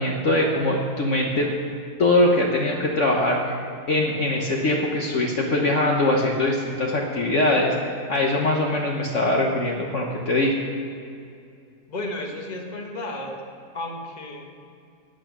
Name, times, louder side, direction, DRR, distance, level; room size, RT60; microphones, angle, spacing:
voice 1, 0.0-1.5 2.0-3.5 3.9-10.6, left 1 dB, 50° left, -1 dB, 1.3 m, -22 dB
voice 2, 11.9-13.4 13.7-14.5, left 2 dB, 30° left, 2 dB, 1.4 m, -33 dB
14.5 x 9.0 x 6.1 m, 2.4 s
omnidirectional pair, 1.7 m